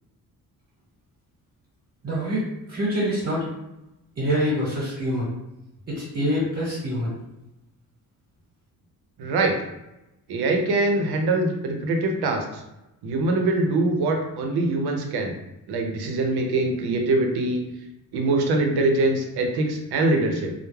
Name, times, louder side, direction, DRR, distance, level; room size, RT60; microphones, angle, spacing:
voice 1, 2.0-2.4 2.7-3.4 4.2-5.3 5.9-7.1, equal, 40° right, -7 dB, 1.0 m, -25 dB
voice 2, 9.2-9.6 10.3-12.4 13.0-15.3 15.7-17.6 18.1-20.5, right 2 dB, 90° right, 2 dB, 0.6 m, -23 dB
2.2 x 2.0 x 3.1 m, 0.92 s
cardioid pair, 95°, 38 cm